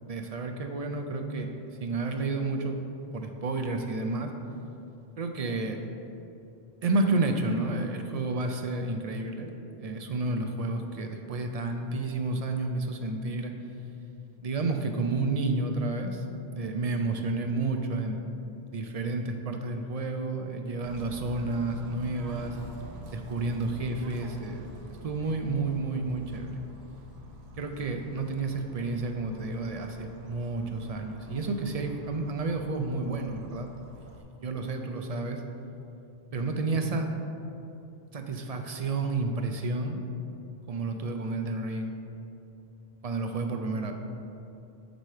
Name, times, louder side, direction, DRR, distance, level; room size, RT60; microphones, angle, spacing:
voice 1, 0.1-1.5 1.8-2.8 3.1-4.3 5.2-5.8 6.8-13.5 14.4-16.2 16.5-18.3 18.6-22.6 23.1-24.6 25.0-26.6 27.6-33.7 34.4-35.4 36.3-37.1 38.1-40.0 40.7-42.0 43.0-43.9, right 3 dB, 55° right, 5 dB, 0.4 m, -30 dB
Bird / Train, 20.8-34.2, equal, 80° right, 1.0 m, -46 dB
7.9 x 3.2 x 5.5 m, 2.8 s
omnidirectional pair, 1.1 m